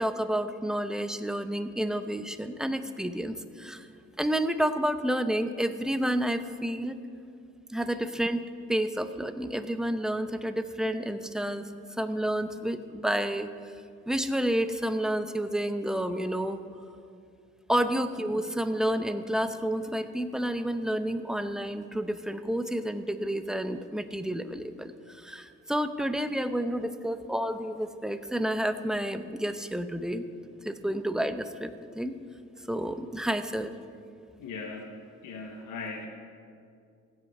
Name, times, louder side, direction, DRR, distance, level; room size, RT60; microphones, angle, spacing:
voice 1, 0.0-3.9 4.2-7.0 7.7-8.4 8.7-11.7 12.0-13.8 14.1-16.6 17.7-30.2 30.6-32.2 32.7-33.7, right 1 dB, ahead, 9 dB, 0.7 m, -30 dB
voice 2, 34.4-36.1, left 4 dB, 85° left, 3 dB, 1.1 m, -39 dB
15.5 x 8.3 x 5.5 m, 2.4 s
cardioid pair, 90°, 30 cm